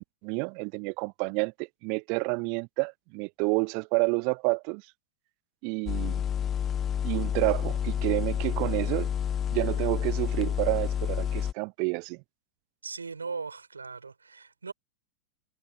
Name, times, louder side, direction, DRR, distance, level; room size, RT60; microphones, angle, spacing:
voice 1, 0.0-4.8 5.6-6.2 7.0-9.1 9.5-12.2, right 37 dB, 45° right, 0.7 m, -29 dB
sound 1, 5.9-11.5, left 9 dB, 25° left, 0.6 m, -29 dB
voice 2, 12.8-14.7, right 4 dB, 75° right, 6.8 m, -38 dB
figure-of-eight pair, 90°, 0 cm